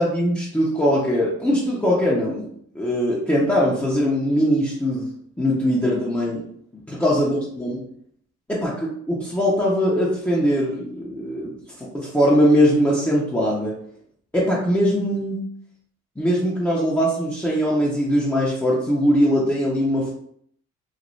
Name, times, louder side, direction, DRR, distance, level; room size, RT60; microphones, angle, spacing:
voice 1, 0.0-2.5 2.7-5.1 5.4-6.4 6.9-7.8 8.5-11.5 11.8-13.7 14.3-15.4 16.2-20.1, equal, 5° left, -7 dB, 0.7 m, -21 dB
3.1 x 2.5 x 2.6 m, 0.66 s
cardioid pair, 90°, 30 cm